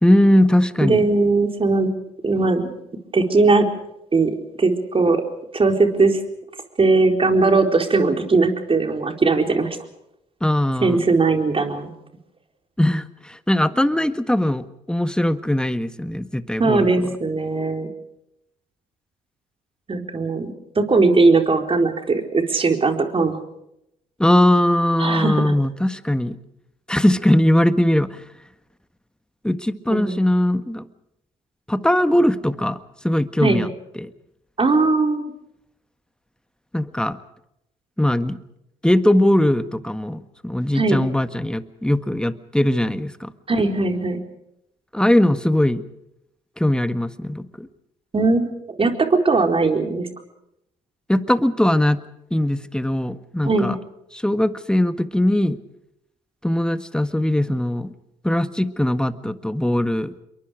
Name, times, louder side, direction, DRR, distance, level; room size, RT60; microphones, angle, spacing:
voice 1, 0.0-1.1 10.4-11.0 12.8-17.1 24.2-26.4 26.9-28.2 29.4-30.8 31.7-32.8 33.0-33.7 33.9-34.1 36.7-37.2 38.0-38.4 38.8-43.3 44.9-45.8 46.6-47.7 51.1-52.0 52.3-53.8 54.1-55.6 56.4-57.9 58.2-60.1, left 1 dB, 5° left, 12 dB, 1.6 m, -20 dB
voice 2, 0.8-1.9 2.2-2.7 3.1-3.7 4.1-4.3 4.6-5.2 5.5-6.2 6.8-9.7 10.8-11.9 16.6-17.9 19.9-23.4 25.0-25.5 29.9-30.3 33.4-33.6 34.6-35.2 40.7-41.0 43.5-44.2 48.1-48.5 48.8-50.1 53.5-53.7, right 3 dB, 35° right, 4 dB, 4.2 m, -19 dB
27.5 x 23.0 x 5.0 m, 0.81 s
hypercardioid pair, 50°, 17 cm